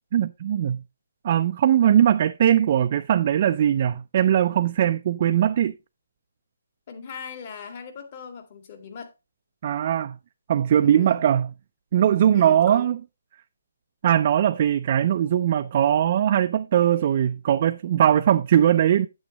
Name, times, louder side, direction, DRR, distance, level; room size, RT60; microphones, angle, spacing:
voice 1, 0.1-0.8 1.2-5.7 9.6-10.2 10.5-11.5 11.9-13.0 14.0-19.1, right 10 dB, 40° right, 0.4 m, -20 dB
voice 2, 6.9-9.1 10.8-11.3 12.3-12.9, left 6 dB, 40° left, 2.0 m, -39 dB
8.6 x 8.0 x 3.0 m
hypercardioid pair, 155°, 0 cm